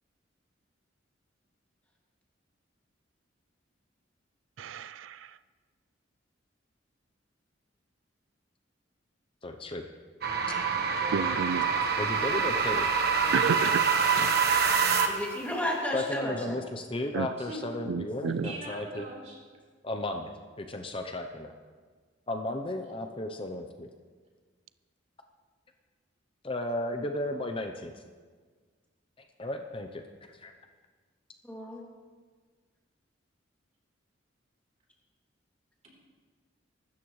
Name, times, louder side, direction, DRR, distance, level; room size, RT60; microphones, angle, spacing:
voice 1, 4.6-5.4 11.1-11.7 13.3-13.8 14.2-14.4 17.1-17.3 17.9-18.5, right 6 dB, 85° right, 14 dB, 0.4 m, -31 dB
voice 2, 9.4-9.9 12.0-12.9 15.9-19.1 19.8-20.3 20.6-21.5 22.3-23.9 26.4-28.0 29.2-30.5, left 1 dB, 30° left, 5 dB, 0.7 m, -34 dB
sound 1, 10.2-15.4, right 5 dB, 55° right, 1.3 m, -26 dB
voice 3, 10.4-11.5 17.4-17.7 18.4-19.4, right 1 dB, 35° right, -2 dB, 3.9 m, -42 dB
voice 4, 15.1-16.6 31.4-31.8, left 1 dB, 10° left, -3 dB, 2.6 m, -33 dB
24.0 x 13.0 x 3.2 m, 1.5 s
head